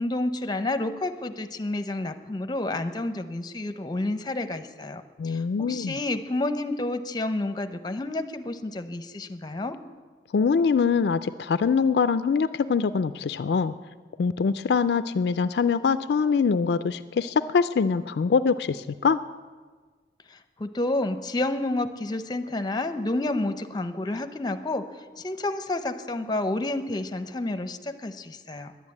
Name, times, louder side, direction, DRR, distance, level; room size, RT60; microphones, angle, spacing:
voice 1, 0.0-9.8 20.3-24.8 25.2-28.7, left 2 dB, 25° left, 9 dB, 0.7 m, -30 dB
voice 2, 5.2-6.0 10.3-13.7 14.2-19.2, left 5 dB, 65° left, 13 dB, 0.4 m, -23 dB
11.0 x 10.0 x 8.4 m, 1.4 s
head